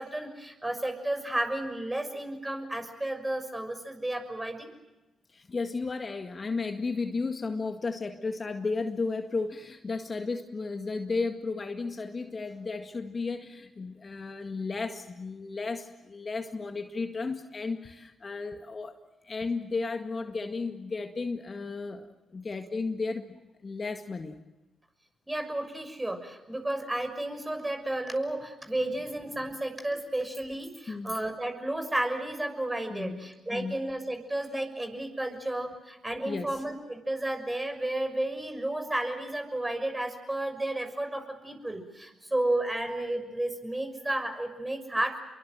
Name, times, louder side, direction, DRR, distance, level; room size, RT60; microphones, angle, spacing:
voice 1, 0.0-4.7 25.3-45.2, right 1 dB, 15° right, 6 dB, 6.4 m, -32 dB
voice 2, 5.3-19.0 19.2-23.4 23.6-24.4 30.9-31.2 32.9-33.8 36.3-36.6, left 4 dB, 40° left, 6 dB, 1.9 m, -34 dB
29.0 x 23.0 x 7.7 m, 1.1 s
hypercardioid pair, 40°, 0 cm